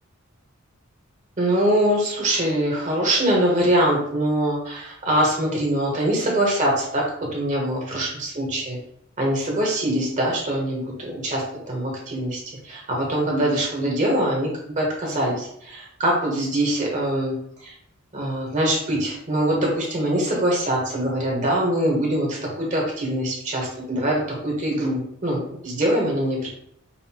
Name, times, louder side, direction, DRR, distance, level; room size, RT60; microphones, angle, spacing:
voice 1, 1.4-8.8 9.2-14.5 14.8-17.7 18.1-26.5, right 1 dB, 35° right, -2 dB, 0.9 m, -23 dB
5.4 x 2.5 x 2.8 m, 0.71 s
head